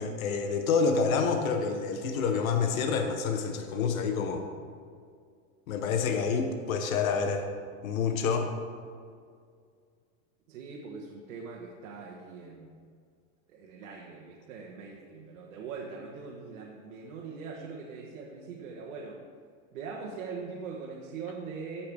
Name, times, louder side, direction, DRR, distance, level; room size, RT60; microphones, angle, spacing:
voice 1, 0.0-4.4 5.7-7.5 7.8-8.5, left 5 dB, 80° left, 5 dB, 1.1 m, -28 dB
voice 2, 10.5-12.7 13.5-19.2 19.7-21.9, right 5 dB, 85° right, -2 dB, 1.4 m, -41 dB
14.5 x 5.7 x 3.5 m, 2.1 s
supercardioid pair, 170°, 40 cm